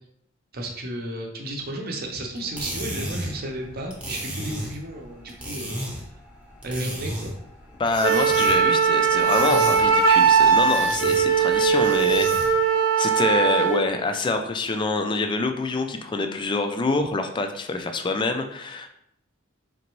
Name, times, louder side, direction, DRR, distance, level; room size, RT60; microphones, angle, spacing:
voice 1, 0.5-5.8 6.6-7.3, right 1 dB, 45° right, 1 dB, 0.7 m, -33 dB
sound 1, 2.4-12.7, equal, 5° right, 0.7 m, -35 dB
voice 2, 7.8-12.6 13.0-18.9, left 3 dB, 25° left, 7 dB, 0.3 m, -26 dB
Wind instrument woodwind instrument, 8.0-13.8, right 6 dB, 90° right, 0.9 m, -19 dB
3.9 x 3.4 x 3.0 m, 0.75 s
head